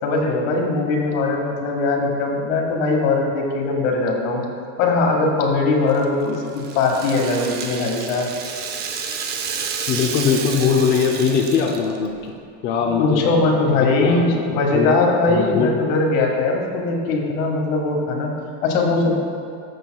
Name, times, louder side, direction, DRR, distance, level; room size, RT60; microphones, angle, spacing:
voice 1, 0.0-4.4 4.8-8.3 12.8-18.3 18.6-19.1, left 3 dB, 90° left, 0 dB, 1.9 m, -20 dB
Rattle (instrument), 5.9-12.1, right 6 dB, 25° right, 0.5 m, -30 dB
voice 2, 9.9-12.3 12.6-14.3 14.5-15.0 15.3-15.7, left 6 dB, 30° left, 1 dB, 0.6 m, -21 dB
14.0 x 7.3 x 2.3 m, 2.6 s
cardioid pair, 170°, 38 cm